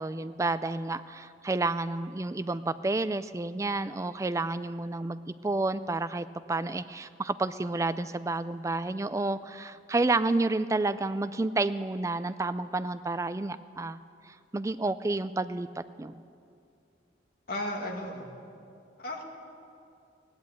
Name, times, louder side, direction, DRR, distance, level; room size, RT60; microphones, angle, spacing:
voice 1, 0.0-14.0 14.3-16.2, right 2 dB, 15° right, 14 dB, 0.3 m, -30 dB
voice 2, 17.5-18.3 19.0-19.2, left 1 dB, 55° left, -1 dB, 2.2 m, -34 dB
16.5 x 10.5 x 8.3 m, 2.5 s
head